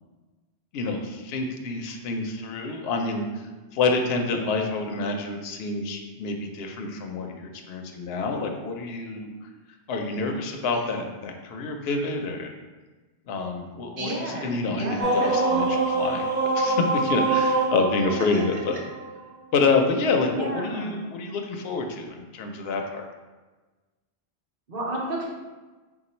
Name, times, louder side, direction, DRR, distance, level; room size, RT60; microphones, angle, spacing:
voice 1, 0.7-3.2 3.7-9.3 9.9-12.5 13.3-18.8 19.5-23.1, left 3 dB, 70° left, 3 dB, 0.8 m, -27 dB
voice 2, 14.0-15.3 18.3-18.4 20.3-21.0 24.7-25.3, right 1 dB, 55° right, -3 dB, 1.0 m, -32 dB
sound 1, 15.0-19.2, right 3 dB, 10° right, 0.7 m, -24 dB
3.9 x 2.3 x 4.2 m, 1.2 s
omnidirectional pair, 1.1 m